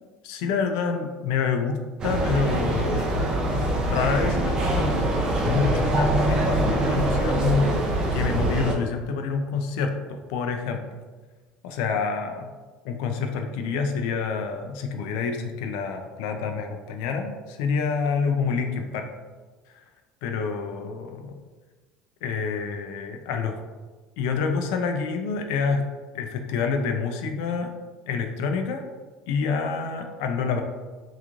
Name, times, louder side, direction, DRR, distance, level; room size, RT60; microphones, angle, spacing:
voice 1, 0.2-3.3 3.9-5.1 5.4-7.8 8.1-10.8 11.6-12.5 12.8-19.1 19.7-19.8 20.2-21.4 22.2-23.6 24.2-25.9 26.1-27.7 28.1-28.8 29.3-30.6, left 5 dB, 85° left, 5 dB, 0.3 m, -27 dB
sound 1, 2.0-8.7, right 1 dB, 30° right, 0.4 m, -24 dB
3.0 x 2.4 x 2.4 m, 1.3 s
cardioid pair, 135°, 3 cm